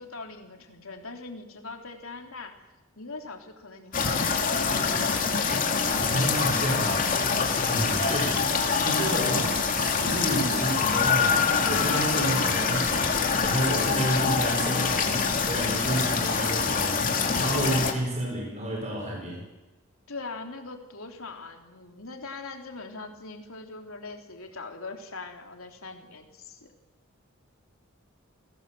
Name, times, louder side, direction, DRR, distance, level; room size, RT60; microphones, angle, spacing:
voice 1, 0.0-5.4 20.1-26.7, left 3 dB, 80° left, 4 dB, 3.6 m, -41 dB
sound 1, 3.9-17.9, left 5 dB, 40° left, 2.9 m, -25 dB
voice 2, 6.1-7.3 7.6-8.5 8.8-19.4, right 1 dB, 35° right, 0 dB, 5.8 m, -31 dB
29.5 x 18.0 x 7.9 m, 1.1 s
head